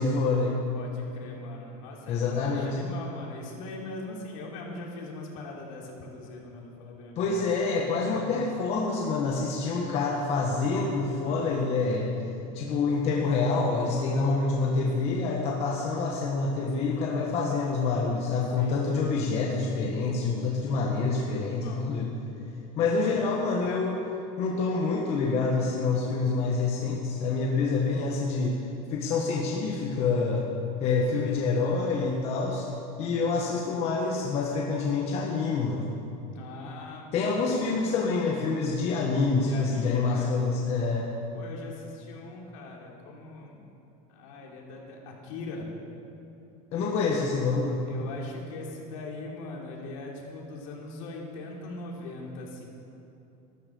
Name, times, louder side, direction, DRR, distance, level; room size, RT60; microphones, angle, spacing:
voice 1, 0.0-0.6 2.1-2.8 7.2-12.1 12.5-22.1 22.7-24.0 24.4-28.6 28.9-30.4 30.8-32.7 33.0-35.8 37.1-41.1 46.7-47.8, left 4 dB, 35° left, -2 dB, 1.5 m, -27 dB
voice 2, 0.7-7.6 7.9-8.3 18.4-18.8 21.1-21.9 23.0-23.5 32.6-32.8 36.3-37.6 39.4-40.4 41.3-43.6 44.1-45.7 47.9-52.7, left 3 dB, 70° left, -1 dB, 3.4 m, -41 dB
13.0 x 13.0 x 7.0 m, 2.9 s
cardioid pair, 175°, 18 cm